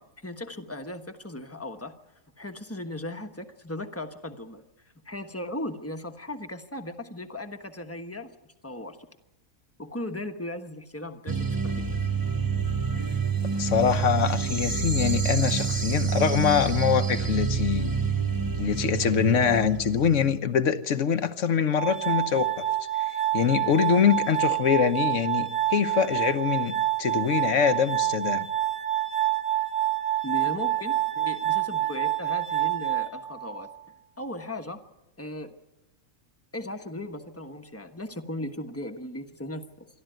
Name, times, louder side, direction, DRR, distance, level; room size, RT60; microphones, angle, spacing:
voice 1, 0.0-2.0 2.4-4.6 5.0-9.0 9.8-12.0 30.2-33.7 34.2-34.8 35.2-35.5 36.5-39.9, left 1 dB, 10° left, 1.1 m, -37 dB
sound 1, 11.3-20.4, right 5 dB, 20° right, 0.7 m, -27 dB
voice 2, 13.6-17.9 18.6-22.6 23.3-26.7 27.0-28.5, left 7 dB, 60° left, 1.3 m, -24 dB
Glass, 21.7-33.7, right 13 dB, 45° right, 0.9 m, -27 dB
26.5 x 12.0 x 9.1 m
omnidirectional pair, 1.5 m